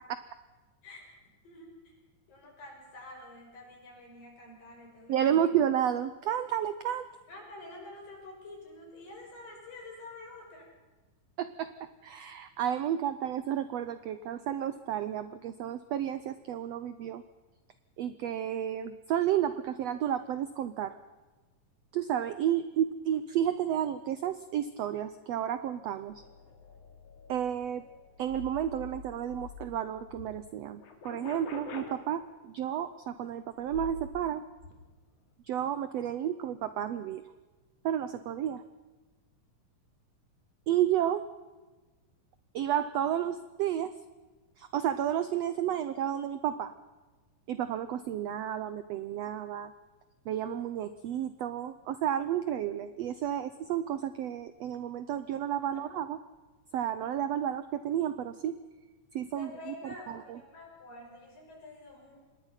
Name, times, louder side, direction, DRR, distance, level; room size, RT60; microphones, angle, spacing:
voice 1, 1.4-1.9 2.3-5.5 7.3-10.7 55.7-55.8 59.4-62.2, left 2 dB, 80° left, 0 dB, 7.9 m, -48 dB
voice 2, 5.1-7.1 11.4-11.7 12.0-17.2 18.0-20.9 21.9-26.2 27.3-27.8 28.2-34.4 35.4-37.2 37.8-38.6 40.7-41.2 42.5-43.9 44.6-46.7 47.5-49.7 50.3-56.2 56.7-58.6 59.1-60.4, right 10 dB, 80° right, 12 dB, 1.4 m, -31 dB
sound 1, 26.1-30.3 30.7-31.9 33.6-34.2 34.5-34.7, left 5 dB, 60° left, 4.2 m, -46 dB
26.0 x 20.0 x 5.8 m, 1.2 s
omnidirectional pair, 3.9 m